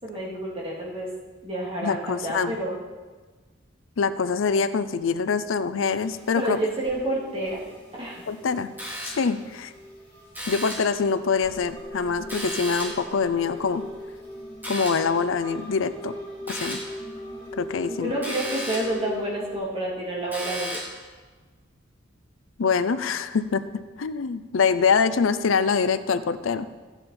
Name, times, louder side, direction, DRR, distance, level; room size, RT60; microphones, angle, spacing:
voice 1, 0.0-1.1 1.4-2.8 6.3-7.6 8.0-8.2 17.9-20.8, right 1 dB, 30° right, -5 dB, 3.0 m, -29 dB
voice 2, 1.8-2.6 4.0-6.6 8.3-8.7 9.2-9.7 10.5-13.8 14.7-16.1 16.5-16.8 17.6-18.1 22.6-23.6 24.0-26.7, left 5 dB, 85° left, 13 dB, 0.5 m, -24 dB
sound 1, 6.0-19.6, equal, 25° left, 4.2 m, -40 dB
sound 2, 8.8-9.4 10.3-11.0 12.3-13.1 14.6-15.2 16.5-17.0 18.2-19.0 20.3-21.0, equal, 10° right, 2.8 m, -34 dB
14.0 x 8.9 x 4.3 m, 1.3 s
head